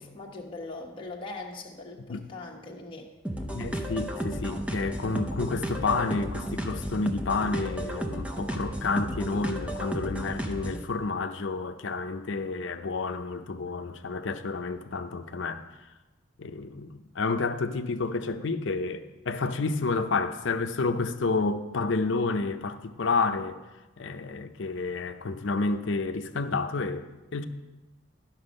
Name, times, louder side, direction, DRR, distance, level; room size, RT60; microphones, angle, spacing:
voice 1, 0.0-3.1, left 2 dB, 25° left, 1.2 m, -41 dB
sound 1, 3.2-10.9, equal, 5° right, 0.6 m, -33 dB
voice 2, 3.5-15.6 16.4-23.6 24.0-27.4, left 3 dB, 65° left, 0.6 m, -30 dB
11.5 x 6.1 x 5.3 m
head